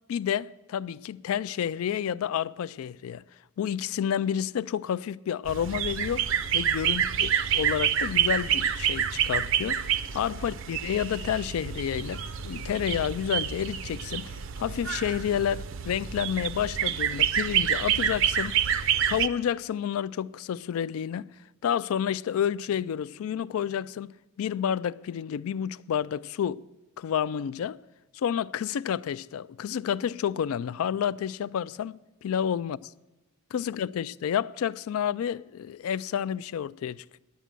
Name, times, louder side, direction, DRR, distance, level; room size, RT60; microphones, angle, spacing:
voice 1, 0.1-3.2 3.6-6.3 6.5-9.9 10.1-18.6 19.1-21.3 21.6-26.6 27.0-27.8 28.1-32.8 33.5-37.2, left 9 dB, 85° left, 0.3 m, -30 dB
sound 1, 5.5-19.3, right 9 dB, 65° right, 0.5 m, -28 dB
10.0 x 9.4 x 7.5 m
head